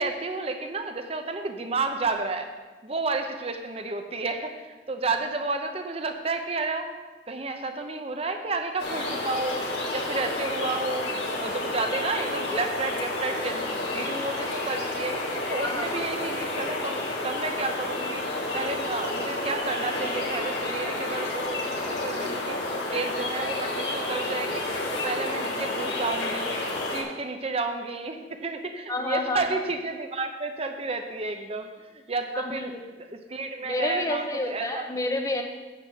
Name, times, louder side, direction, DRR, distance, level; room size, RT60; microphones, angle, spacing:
voice 1, 0.0-2.5 2.8-6.9 7.3-9.6 9.9-11.1 11.4-15.2 15.5-18.2 18.5-24.6 24.9-26.5 26.9-32.7 33.1-34.8, right 3 dB, 35° right, 6 dB, 0.8 m, -31 dB
sound 1, 8.8-27.0, left 2 dB, 85° left, 2.2 m, -30 dB
voice 2, 15.6-16.0 28.9-29.4 32.3-32.9 33.6-35.4, left 2 dB, 20° left, 4 dB, 0.8 m, -29 dB
8.1 x 6.0 x 6.8 m, 1.3 s
head